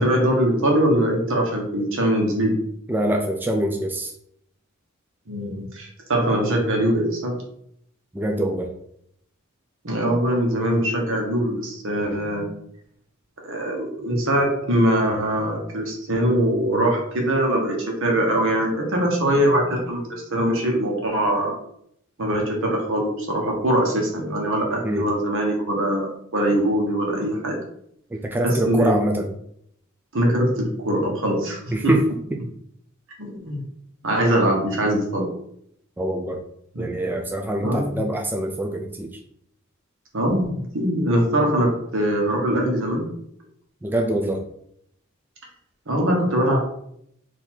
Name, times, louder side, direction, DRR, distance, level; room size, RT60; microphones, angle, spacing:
voice 1, 0.0-2.6 5.3-7.4 9.8-12.4 13.4-21.5 22.2-27.6 28.4-28.9 30.1-31.9 33.2-33.6 34.0-35.3 36.7-37.0 37.6-38.0 40.1-43.1 45.9-46.6, right 1 dB, 65° right, 0 dB, 1.2 m, -22 dB
voice 2, 2.9-4.1 8.1-8.7 24.8-25.0 28.1-29.3 31.7-32.0 36.0-36.4 36.8-39.2 43.8-44.4, right 1 dB, 10° right, 2 dB, 0.3 m, -24 dB
4.0 x 2.8 x 4.4 m, 0.70 s
head